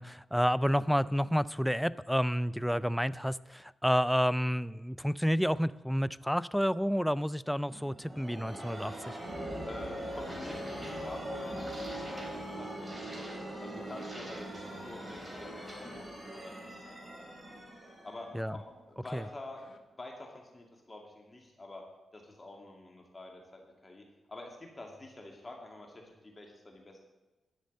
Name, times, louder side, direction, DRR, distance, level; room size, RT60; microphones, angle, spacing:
voice 1, 0.0-9.2 18.3-18.5 19.1-19.2, equal, ahead, 17 dB, 0.4 m, -30 dB
sound 1, 7.7-19.2, right 1 dB, 20° right, 3.9 m, -41 dB
voice 2, 9.7-13.3 13.6-17.3 18.0-18.6 18.9-21.8 22.1-27.0, left 2 dB, 30° left, 1 dB, 2.4 m, -48 dB
bathtub squeaks, 10.2-11.5 13.9-16.3 18.4-18.8 19.1-19.8, left 5 dB, 65° left, 1.2 m, -54 dB
11.5 x 6.5 x 8.5 m, 1.1 s
cardioid pair, 75°, 0 cm